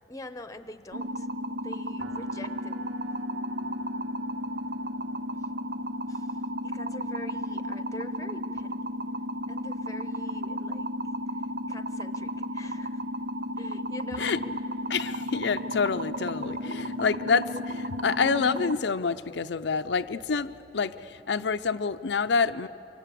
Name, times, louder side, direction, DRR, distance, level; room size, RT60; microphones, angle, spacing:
voice 1, 0.1-1.3 1.6-2.8 5.3-5.5 6.1-8.9 9.5-11.0 11.3-13.0 13.6-14.3, left 1 dB, 20° left, 11 dB, 0.8 m, -45 dB
sound 1, 0.9-18.8, equal, 60° right, 0.6 m, -33 dB
sound 2, 2.0-8.2, right 4 dB, 85° right, 0.9 m, -52 dB
voice 2, 14.9-22.7, left 5 dB, 70° left, 9 dB, 0.5 m, -27 dB
24.5 x 24.5 x 8.4 m, 3.0 s
head